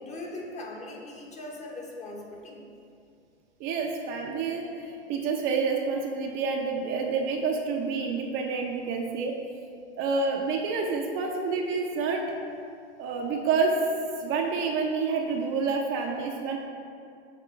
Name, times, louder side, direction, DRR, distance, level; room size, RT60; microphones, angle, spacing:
voice 1, 0.0-2.6, left 2 dB, 20° left, -1 dB, 1.0 m, -40 dB
voice 2, 3.6-9.3 10.0-12.2 13.0-13.7 14.2-16.6, right 4 dB, 35° right, 1 dB, 0.7 m, -28 dB
7.0 x 3.7 x 4.5 m, 2.4 s
hypercardioid pair, 105°, 33 cm